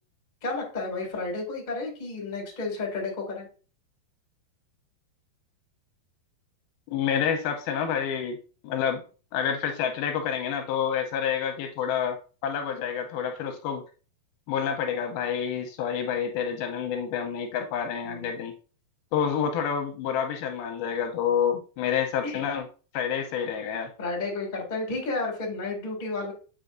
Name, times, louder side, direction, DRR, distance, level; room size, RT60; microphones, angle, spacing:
voice 1, 0.4-3.5 18.0-18.5 22.2-22.5 24.0-26.3, left 3 dB, 25° left, -1 dB, 1.0 m, -32 dB
voice 2, 6.9-8.4 8.6-9.0 9.3-12.2 12.4-13.8 14.5-18.5 19.1-22.7 22.9-23.9, left 8 dB, 85° left, 5 dB, 2.4 m, -28 dB
7.9 x 4.8 x 2.5 m, 0.37 s
omnidirectional pair, 4.7 m